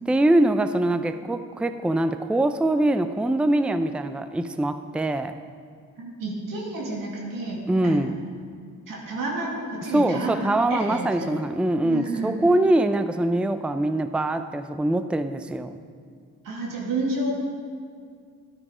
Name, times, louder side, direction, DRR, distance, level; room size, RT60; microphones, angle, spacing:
voice 1, 0.1-5.4 7.7-8.2 9.9-15.8, right 1 dB, 5° right, 10 dB, 0.5 m, -23 dB
voice 2, 6.0-7.6 7.8-8.0 8.9-11.3 11.8-12.3 16.4-17.3, right 2 dB, 80° right, -3 dB, 2.4 m, -30 dB
12.5 x 8.6 x 5.0 m, 2.2 s
cardioid pair, 70°, 33 cm